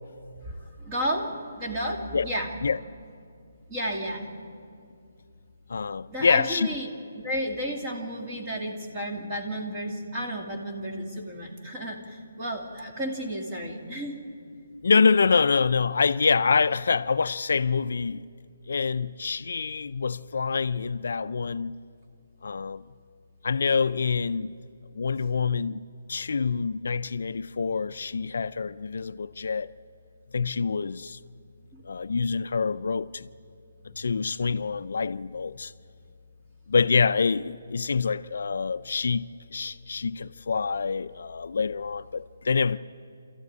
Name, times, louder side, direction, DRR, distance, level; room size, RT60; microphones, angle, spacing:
voice 1, 0.4-2.5 3.7-4.2 6.1-6.9 7.2-14.2 31.7-31.8, equal, 15° right, 2.5 m, -32 dB
voice 2, 5.7-6.7 14.8-18.2 18.7-21.7 22.4-22.8 23.4-24.5 24.9-25.8 26.1-29.7 30.3-31.2 31.8-33.3 34.0-35.7 36.7-39.2 39.5-42.8, left 5 dB, 65° left, 0.5 m, -26 dB
27.0 x 14.0 x 9.5 m
hypercardioid pair, 175°, 0 cm